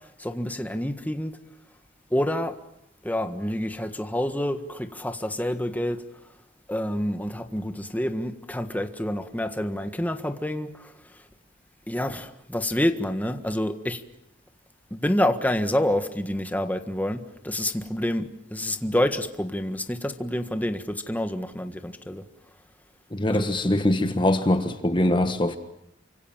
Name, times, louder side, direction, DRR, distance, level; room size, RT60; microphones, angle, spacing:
voice 1, 0.0-1.3 2.1-2.6 3.0-6.0 6.7-11.2 11.9-14.0 14.9-22.2 23.3-23.5, left 1 dB, 10° left, 1.6 m, -28 dB
voice 2, 23.1-25.6, left 1 dB, 25° left, 1.4 m, -22 dB
29.0 x 26.0 x 7.4 m
head